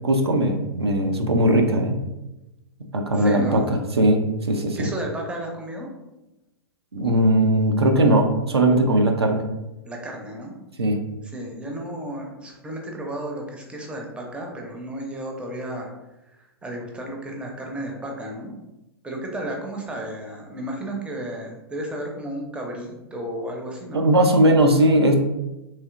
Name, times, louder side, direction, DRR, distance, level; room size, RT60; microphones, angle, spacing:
voice 1, 0.0-2.0 2.9-4.2 4.5-4.9 6.9-9.4 10.8-11.0 23.9-25.2, right 1 dB, 85° right, 3 dB, 0.5 m, -19 dB
voice 2, 3.1-3.6 4.8-5.9 9.8-10.5 11.2-15.9 16.3-18.5 19.0-24.0, right 1 dB, 10° right, 0 dB, 0.5 m, -33 dB
3.1 x 2.7 x 2.4 m, 0.96 s
figure-of-eight pair, 110°, 13 cm